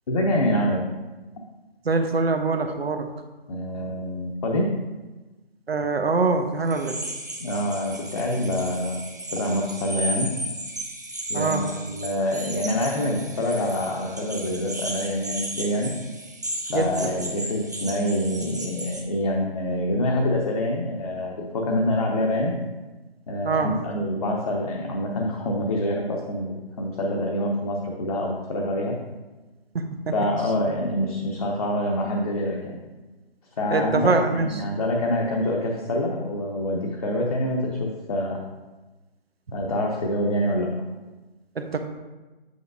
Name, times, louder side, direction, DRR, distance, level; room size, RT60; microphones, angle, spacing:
voice 1, 0.1-0.9 3.5-4.7 7.4-9.0 9.3-10.3 11.3-15.9 16.7-22.6 23.3-29.0 30.1-32.8 33.6-38.4 39.5-40.7, left 1 dB, 35° left, -1 dB, 0.9 m, -26 dB
voice 2, 1.8-3.1 5.7-7.0 11.3-11.6 16.7-17.1 23.4-23.7 29.7-30.1 33.7-34.6 41.6-41.8, right 3 dB, 75° right, 6 dB, 1.0 m, -24 dB
sound 1, 6.7-19.0, right 1 dB, 20° right, 0.4 m, -35 dB
7.9 x 7.0 x 2.6 m, 1.2 s
figure-of-eight pair, 150°, 31 cm